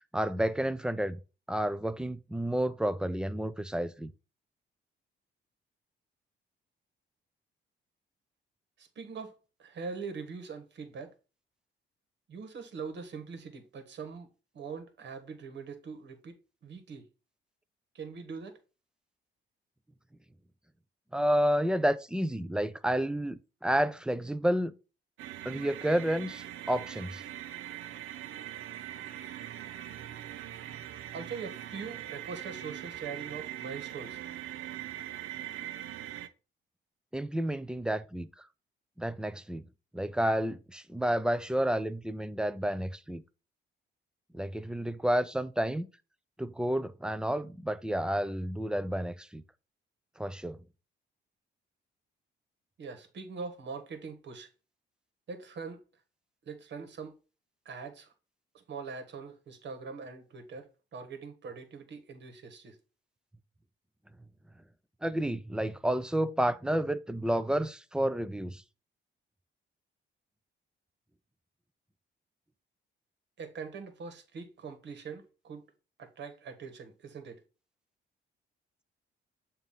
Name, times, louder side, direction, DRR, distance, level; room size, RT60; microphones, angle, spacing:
voice 1, 0.1-1.2 1.5-4.1 21.1-24.7 25.4-27.2 37.1-38.5 39.0-39.6 39.9-43.2 44.3-45.9 46.4-49.4 50.2-50.6 65.0-68.6, equal, 5° right, 0.5 m, -30 dB
voice 2, 8.8-9.3 9.6-11.1 12.3-14.3 14.5-16.3 16.6-17.1 17.9-18.6 31.1-34.2 52.8-54.5 55.3-55.8 56.4-57.2 57.6-58.1 58.5-62.8 73.4-75.6 76.0-77.4, right 5 dB, 60° right, 1.5 m, -42 dB
sound 1, 25.2-36.3, right 12 dB, 85° right, 0.6 m, -42 dB
7.1 x 2.7 x 5.5 m
cardioid pair, 90°, 20 cm